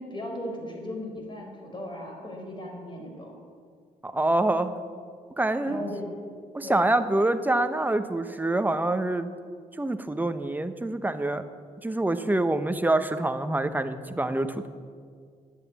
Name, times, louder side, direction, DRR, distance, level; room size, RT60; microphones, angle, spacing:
voice 1, 0.0-3.3 5.7-6.1 6.6-6.8, left 1 dB, 35° left, 1 dB, 4.3 m, -37 dB
voice 2, 4.0-4.8 5.4-5.9 6.5-9.3 9.8-11.4 11.8-14.7, right 2 dB, 10° right, 9 dB, 0.9 m, -26 dB
10.5 x 9.5 x 8.9 m, 2.1 s
cardioid pair, 75°, 15 cm